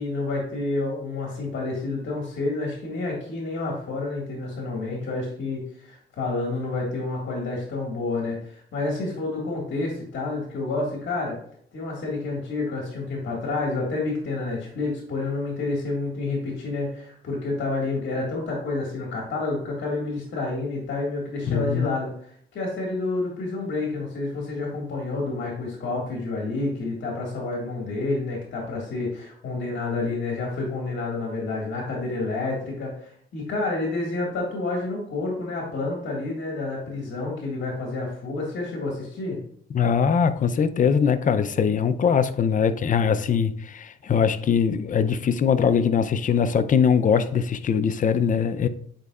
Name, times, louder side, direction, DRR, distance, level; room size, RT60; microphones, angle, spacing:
voice 1, 0.0-11.4 11.7-22.1 22.5-39.4, left 3 dB, 65° left, 1.8 m, -29 dB
voice 2, 21.5-21.9 39.7-48.7, left 7 dB, 40° left, 0.5 m, -21 dB
9.0 x 4.7 x 2.4 m
cardioid pair, 90°, 20 cm